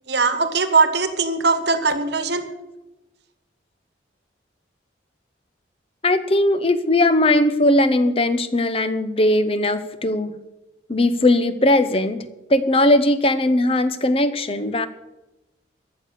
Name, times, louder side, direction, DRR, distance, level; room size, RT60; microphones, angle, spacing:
voice 1, 0.1-2.4, right 4 dB, 60° right, 10 dB, 1.3 m, -20 dB
voice 2, 6.0-10.3 10.9-14.9, left 1 dB, 30° left, 12 dB, 0.8 m, -19 dB
13.5 x 6.7 x 8.5 m, 0.98 s
head